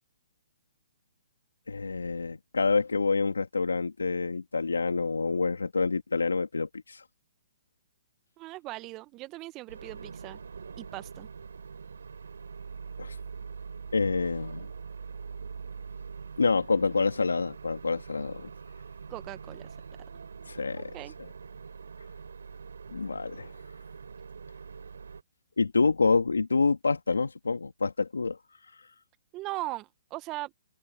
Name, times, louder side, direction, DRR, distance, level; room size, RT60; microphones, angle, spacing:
voice 1, 1.7-7.0 13.0-13.2 13.9-14.7 16.4-18.5 20.5-20.9 21.2-21.3 22.9-23.5 25.6-28.4 28.8-28.9, left 4 dB, 85° left, 2.1 m, -27 dB
voice 2, 8.4-10.4 10.8-11.3 19.1-19.7 20.9-21.1 29.3-30.5, right 19 dB, 25° right, 0.8 m, -39 dB
sound 1, 9.7-25.2, right 5 dB, 75° right, 3.3 m, -43 dB
hypercardioid pair, 135°, 0 cm